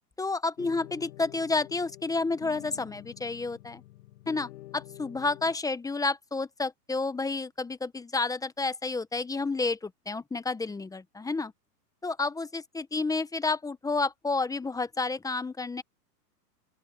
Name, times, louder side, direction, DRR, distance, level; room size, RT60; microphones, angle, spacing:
voice 1, 0.2-3.8 4.3-11.5 12.0-15.8, left 3 dB, 5° left, 1.0 m, -30 dB
sound 1, 0.6-5.6, left 16 dB, 55° left, 2.5 m, -48 dB
open air
hypercardioid pair, 125°, 49 cm